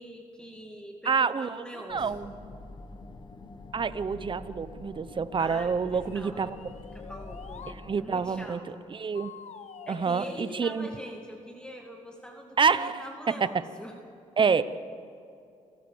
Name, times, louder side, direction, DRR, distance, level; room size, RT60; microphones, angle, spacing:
voice 1, 0.0-2.2 5.4-8.8 9.9-14.0 14.4-14.6, equal, 5° left, 2 dB, 2.4 m, -44 dB
voice 2, 1.1-1.6 1.9-2.3 3.7-6.6 7.7-8.6 8.9-9.4 9.9-10.9 12.6-13.0 14.4-14.6, right 5 dB, 40° right, 14 dB, 0.9 m, -27 dB
sound 1, 1.9-8.5, left 2 dB, 35° left, 1.7 m, -46 dB
sound 2, 6.0-7.8 9.1-11.2, left 8 dB, 60° left, 1.0 m, -47 dB
28.5 x 15.0 x 7.1 m, 2.7 s
cardioid pair, 80°, 13 cm